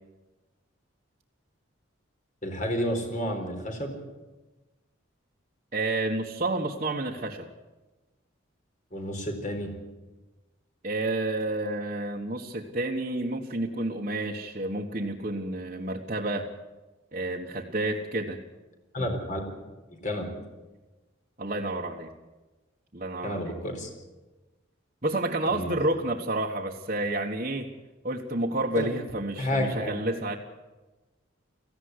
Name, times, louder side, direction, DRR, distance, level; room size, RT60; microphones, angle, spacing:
voice 1, 2.4-3.9 8.9-9.7 18.9-19.5 20.0-20.3 23.2-23.9 25.5-25.7 28.8-28.9 29.4-29.9, equal, 40° left, 4 dB, 4.3 m, -30 dB
voice 2, 5.7-7.5 10.8-16.5 17.1-18.4 21.4-22.1 22.9-23.5 25.0-27.7 28.0-30.4, right 2 dB, 35° right, -3 dB, 1.4 m, -30 dB
18.0 x 15.5 x 9.8 m, 1.1 s
head